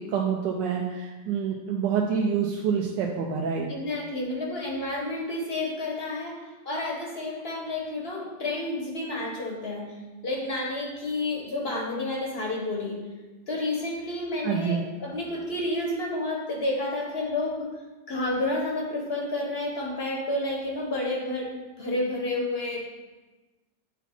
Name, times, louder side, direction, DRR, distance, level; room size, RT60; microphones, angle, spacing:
voice 1, 0.0-3.7 14.4-14.8, right 6 dB, 85° right, 0 dB, 1.3 m, -27 dB
voice 2, 3.7-9.9 10.2-13.0 13.5-17.7 18.1-21.5 21.8-22.9, left 2 dB, 45° left, -1 dB, 1.0 m, -30 dB
8.0 x 4.2 x 4.2 m, 1.2 s
omnidirectional pair, 1.9 m